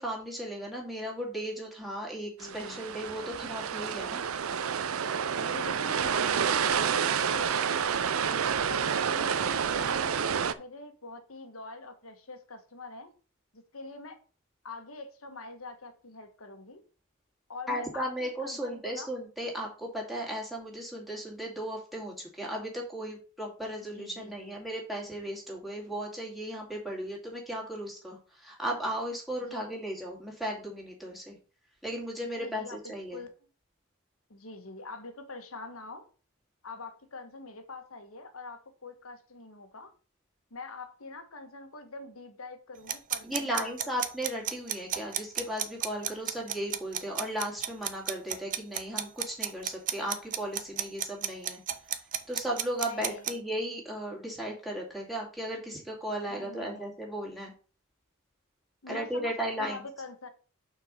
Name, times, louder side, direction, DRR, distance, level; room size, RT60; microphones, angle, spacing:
voice 1, 0.0-4.2 17.7-31.4 31.8-33.2 43.2-51.6 51.9-52.0 52.3-57.5 58.9-59.8, equal, ahead, 2.4 m, -36 dB
voice 2, 2.4-2.8 5.4-8.1 8.7-13.1 13.5-14.2 14.6-16.8 17.5-19.1 23.9-24.5 29.5-29.9 32.2-33.3 34.3-36.1 36.6-39.9 40.5-43.9 52.8-53.5 56.3-56.9 58.8-60.3, left 3 dB, 80° left, 1.4 m, -44 dB
sound 1, 2.4-10.5, right 7 dB, 80° right, 0.5 m, -29 dB
sound 2, 42.9-53.3, right 10 dB, 40° right, 0.6 m, -32 dB
5.9 x 4.5 x 6.4 m
head